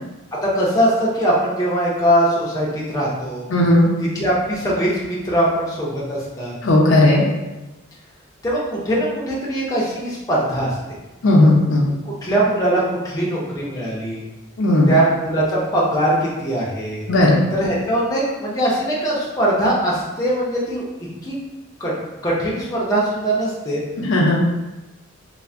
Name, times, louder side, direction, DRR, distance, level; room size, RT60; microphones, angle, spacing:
voice 1, 0.4-3.5 4.0-6.5 8.4-10.8 12.1-14.2 14.9-17.1 17.5-20.8 21.2-21.3 21.8-21.9 22.2-23.8, right 1 dB, 15° left, -6 dB, 0.5 m, -21 dB
voice 2, 3.5-3.9 6.6-7.2 11.2-11.9 14.6-14.9 17.1-17.4 24.0-24.4, left 1 dB, 65° left, -1 dB, 0.5 m, -15 dB
3.2 x 2.0 x 2.5 m, 1.1 s
head